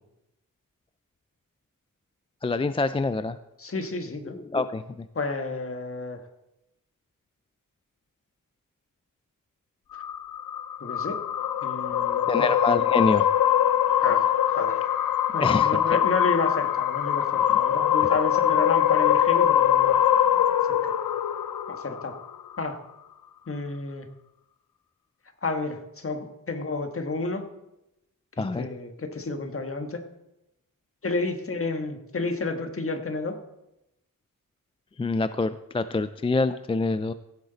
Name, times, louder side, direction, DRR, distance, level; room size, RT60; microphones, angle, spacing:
voice 1, 2.4-3.4 4.3-4.8 12.3-13.3 15.4-15.7 28.4-28.7 35.0-37.1, left 3 dB, 15° left, 12 dB, 0.3 m, -26 dB
voice 2, 3.6-4.4 5.1-6.2 10.8-11.2 11.6-12.5 14.0-14.8 15.3-19.9 20.7-20.9 21.7-22.1 22.6-22.8 23.5-24.1 25.4-27.5 28.4-30.0 31.0-33.4, left 3 dB, 40° left, 6 dB, 1.4 m, -31 dB
sound 1, 9.9-22.4, left 10 dB, 80° left, 0.6 m, -23 dB
16.0 x 8.0 x 4.0 m, 0.89 s
wide cardioid pair, 95°, 34 cm